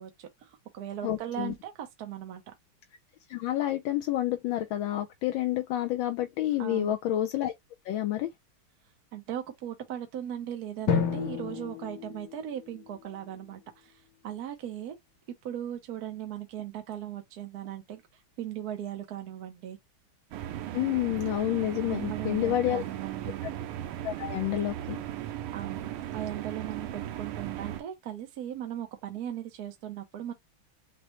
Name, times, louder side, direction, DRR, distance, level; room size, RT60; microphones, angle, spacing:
voice 1, 0.0-2.5 6.6-7.0 9.1-15.0 15.4-18.0 18.4-19.8 21.8-23.4 25.5-30.3, right 11 dB, 60° right, 1.1 m, -38 dB
voice 2, 1.0-1.5 3.3-7.5 7.8-8.3 20.7-22.8 24.0-25.0, left 13 dB, 75° left, 1.3 m, -29 dB
Drum, 10.9-13.4, left 6 dB, 60° left, 1.4 m, -31 dB
sound 1, 20.3-27.8, right 12 dB, 85° right, 1.5 m, -37 dB
6.1 x 2.1 x 2.9 m
omnidirectional pair, 2.3 m